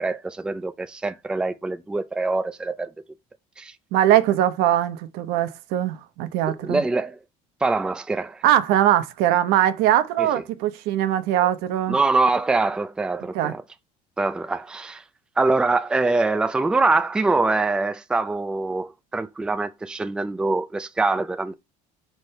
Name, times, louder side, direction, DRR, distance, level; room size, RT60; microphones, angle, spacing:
voice 1, 0.0-2.9 3.6-3.7 6.5-7.2 7.6-8.4 10.2-10.3 11.9-13.6 14.2-15.0 15.4-21.5, right 3 dB, 5° right, 0.4 m, -24 dB
voice 2, 3.9-6.8 8.4-12.0 13.3-13.5, right 12 dB, 75° right, 1.0 m, -21 dB
6.1 x 3.4 x 5.5 m
cardioid pair, 165°, 16 cm